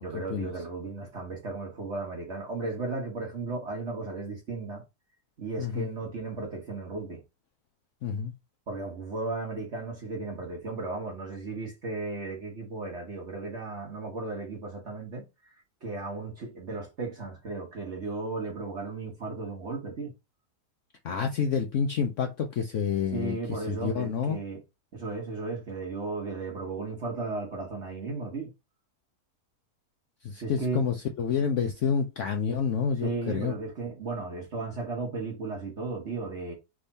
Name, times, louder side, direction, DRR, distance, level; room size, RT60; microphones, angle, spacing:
voice 1, 0.0-4.8 5.4-7.2 8.7-15.5 15.8-20.1 23.1-24.6 24.9-28.5 30.4-30.8 33.0-36.5, right 3 dB, 45° right, 1.5 m, -35 dB
voice 2, 5.6-5.9 8.0-8.3 21.0-24.4 30.2-33.5, left 6 dB, 65° left, 0.8 m, -29 dB
3.6 x 3.5 x 4.1 m
omnidirectional pair, 1.7 m